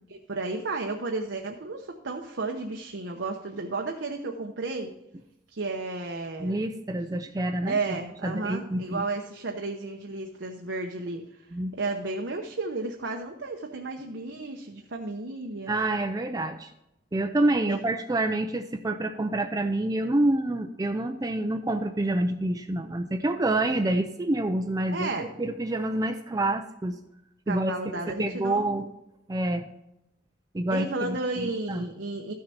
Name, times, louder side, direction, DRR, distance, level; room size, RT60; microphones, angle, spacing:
voice 1, 0.1-5.0 5.5-6.6 7.6-11.4 11.7-15.8 17.7-17.8 24.9-25.3 27.5-28.7 30.7-32.3, right 3 dB, 85° right, 2 dB, 0.9 m, -33 dB
voice 2, 6.4-9.0 11.5-11.7 15.7-16.7 17.1-27.0 27.5-28.8 29.3-29.7 30.5-31.9, right 1 dB, 20° right, 7 dB, 0.4 m, -28 dB
13.0 x 6.6 x 4.3 m, 0.87 s
head